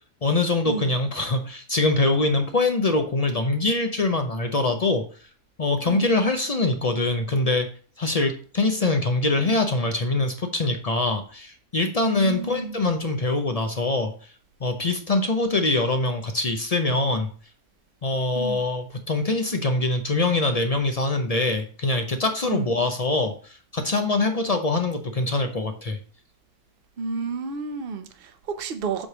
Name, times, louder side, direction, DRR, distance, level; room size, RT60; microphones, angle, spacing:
voice 1, 0.2-5.0 5.6-7.7 8.0-14.1 14.6-17.3 18.0-26.0, left 2 dB, 60° left, 0.4 m, -24 dB
voice 2, 12.0-12.8 18.4-18.6 22.4-22.7 27.0-29.1, right 4 dB, 45° right, 0.9 m, -31 dB
7.5 x 3.3 x 5.9 m
omnidirectional pair, 1.6 m